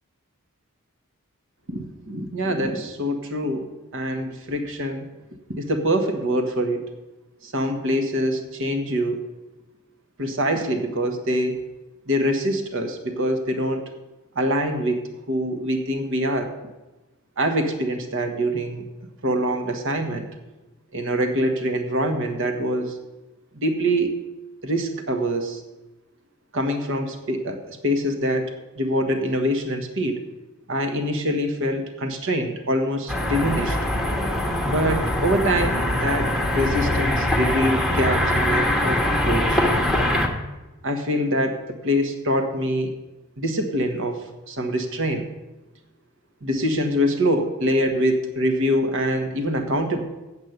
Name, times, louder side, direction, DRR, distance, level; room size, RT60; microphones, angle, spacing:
voice 1, 1.7-3.7 3.9-5.1 5.5-6.8 7.4-9.2 10.2-11.6 12.1-13.9 14.3-15.0 15.3-16.5 17.4-18.8 19.2-20.3 20.9-23.0 23.5-24.1 24.6-25.6 26.5-30.2 30.7-33.8 34.6-39.6 40.8-42.9 43.4-45.3 46.4-50.0, equal, 60° right, 6 dB, 1.3 m, -24 dB
sound 1, 33.1-40.3, left 1 dB, ahead, 1.1 m, -22 dB
8.2 x 7.4 x 8.0 m, 1.1 s
head